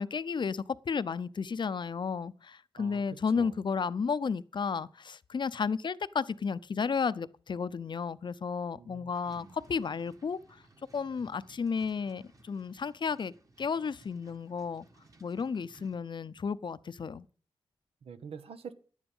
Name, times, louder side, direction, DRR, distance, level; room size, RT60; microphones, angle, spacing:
voice 1, 0.0-10.6 10.9-14.9 15.2-17.2, left 5 dB, 55° left, 0.6 m, -33 dB
voice 2, 8.7-9.6 18.0-18.7, right 6 dB, 90° right, 1.0 m, -46 dB
sound 1, 9.1-16.0, right 2 dB, 35° right, 1.8 m, -60 dB
10.5 x 9.5 x 5.4 m
wide cardioid pair, 85°, 10 cm